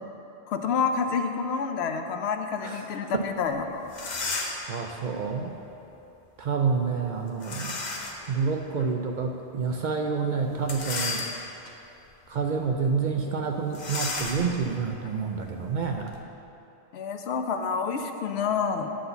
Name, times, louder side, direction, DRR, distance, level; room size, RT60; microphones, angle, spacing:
voice 1, 0.5-3.9 16.9-18.9, left 5 dB, 75° left, 6 dB, 0.8 m, -28 dB
sound 1, 3.5-3.6 3.9-4.7 7.4-8.3 8.8-8.9 10.6-11.7 12.3-12.5 12.7-12.9 13.7-16.2, left 3 dB, 45° left, 0.8 m, -34 dB
voice 2, 4.7-5.5 6.4-7.9 8.3-11.3 12.3-16.2, right 5 dB, 55° right, 2 dB, 0.6 m, -28 dB
10.0 x 4.1 x 6.8 m, 2.9 s
omnidirectional pair, 1.1 m